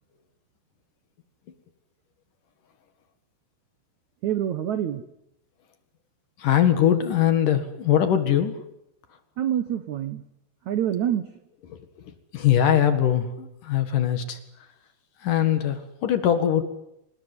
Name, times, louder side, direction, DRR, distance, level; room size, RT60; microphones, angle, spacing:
voice 1, 4.2-5.0 9.4-10.2 10.7-11.3, right 10 dB, 70° right, 10 dB, 1.7 m, -26 dB
voice 2, 6.4-8.6 12.0-14.4 15.2-16.6, left 10 dB, 55° left, 9 dB, 2.9 m, -22 dB
26.5 x 20.0 x 9.8 m, 0.81 s
omnidirectional pair, 5.1 m